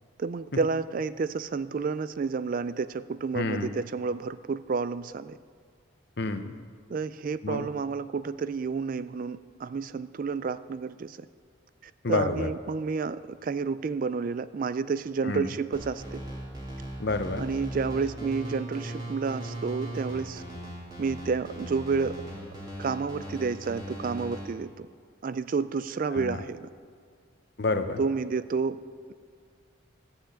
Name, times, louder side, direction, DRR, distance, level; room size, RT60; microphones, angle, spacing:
voice 1, 0.2-5.4 6.9-11.3 11.8-16.2 17.4-20.4 21.0-22.2 22.8-24.9 25.2-26.7 28.0-28.8, right 4 dB, 45° right, 14 dB, 0.3 m, -30 dB
voice 2, 3.3-3.7 6.2-6.5 7.4-7.7 12.0-12.5 15.2-15.5 17.0-17.4 26.1-26.4 27.6-28.0, left 3 dB, 55° left, 8 dB, 0.8 m, -29 dB
sound 1, 15.7-24.4, right 1 dB, 20° right, 2.8 m, -39 dB
13.5 x 6.4 x 8.3 m, 2.1 s
head